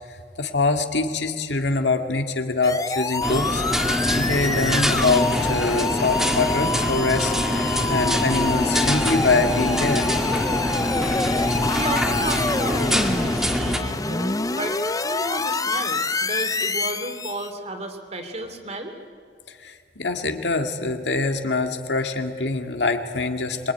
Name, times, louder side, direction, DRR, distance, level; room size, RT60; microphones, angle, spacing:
voice 1, 0.4-3.6 4.2-10.1 19.5-23.7, left 3 dB, 75° left, 5 dB, 2.1 m, -24 dB
sound 1, 2.6-17.5, left 3 dB, 20° left, 0.7 m, -26 dB
sound 2, 3.2-13.8, equal, ahead, 2.1 m, -24 dB
sound 3, 6.4-11.8, right 1 dB, 90° right, 4.9 m, -42 dB
voice 2, 11.7-18.9, right 2 dB, 40° right, 5 dB, 2.9 m, -33 dB
26.0 x 23.0 x 9.5 m, 2.1 s
head